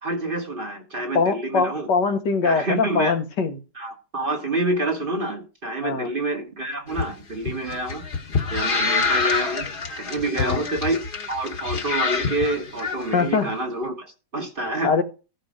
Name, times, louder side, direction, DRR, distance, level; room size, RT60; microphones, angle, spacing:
voice 1, 0.0-1.9 2.4-3.2 3.8-8.0 8.5-9.7 10.0-11.0 11.3-14.9, right 2 dB, 35° right, 1.3 m, -27 dB
voice 2, 1.1-3.6 5.8-6.1 10.4-10.6 13.1-13.5 14.8-15.0, left 5 dB, 80° left, 1.9 m, -22 dB
sound 1, 6.9-13.2, left 4 dB, 35° left, 1.2 m, -26 dB
15.0 x 5.2 x 5.0 m
omnidirectional pair, 1.8 m